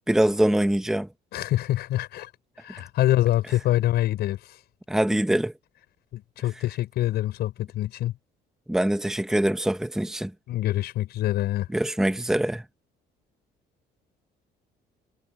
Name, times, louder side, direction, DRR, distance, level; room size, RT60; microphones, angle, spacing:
voice 1, 0.1-1.1 4.9-5.5 8.7-10.3 11.7-12.6, right 1 dB, 5° right, 1.2 m, -23 dB
voice 2, 1.3-2.3 2.6-4.6 6.1-8.1 10.5-11.7, left 14 dB, 75° left, 5.6 m, -25 dB
cardioid pair, 110°, 17 cm